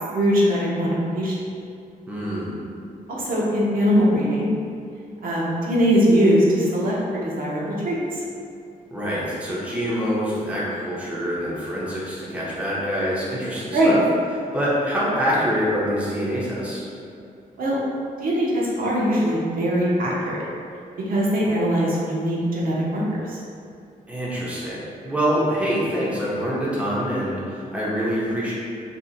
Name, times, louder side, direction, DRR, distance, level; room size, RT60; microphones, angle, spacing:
voice 1, 0.1-1.3 3.1-4.5 5.2-8.2 13.7-13.9 17.6-17.8 18.2-20.4 21.1-23.0 23.3-23.4, equal, 75° right, -6 dB, 0.7 m, -21 dB
voice 2, 2.1-2.5 8.9-14.0 14.5-16.8 24.1-28.5, equal, 10° right, -7 dB, 0.5 m, -25 dB
2.7 x 2.5 x 3.8 m, 2.5 s
wide cardioid pair, 170°, 15 cm